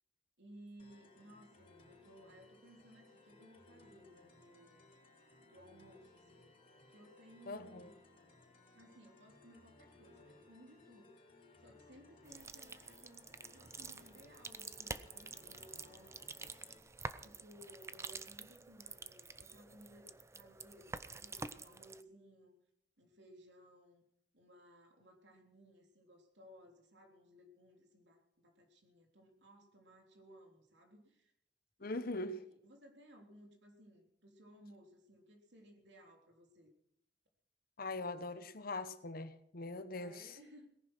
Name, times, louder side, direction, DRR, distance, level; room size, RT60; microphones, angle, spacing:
voice 1, 0.4-4.9 5.4-6.6 6.9-7.9 8.7-11.2 11.6-16.5 17.2-22.6 23.0-24.0 24.3-31.3 31.8-36.7 39.9-40.7, equal, 75° right, 3 dB, 3.5 m, -60 dB
sound 1, 0.8-16.8, left 2 dB, 35° left, 5.0 m, -63 dB
voice 2, 7.5-7.9 31.8-32.4 37.8-40.4, left 2 dB, 55° left, 12 dB, 1.1 m, -42 dB
sound 2, 12.3-22.0, right 3 dB, 15° right, 0.6 m, -48 dB
18.0 x 11.0 x 6.1 m, 0.73 s
head